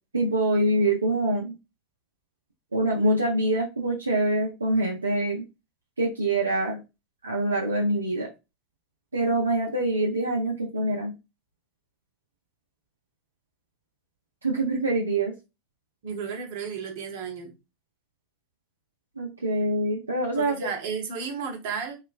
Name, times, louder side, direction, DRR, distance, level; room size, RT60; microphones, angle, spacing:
voice 1, 0.1-1.6 2.7-5.4 6.0-6.8 7.2-8.3 9.1-11.1 14.4-15.3 19.2-20.7, right 1 dB, 85° right, -1 dB, 0.5 m, -25 dB
voice 2, 16.0-17.5 20.3-22.0, right 6 dB, 60° right, 3 dB, 0.9 m, -33 dB
2.8 x 2.3 x 2.4 m, 0.26 s
figure-of-eight pair, 85°, 0 cm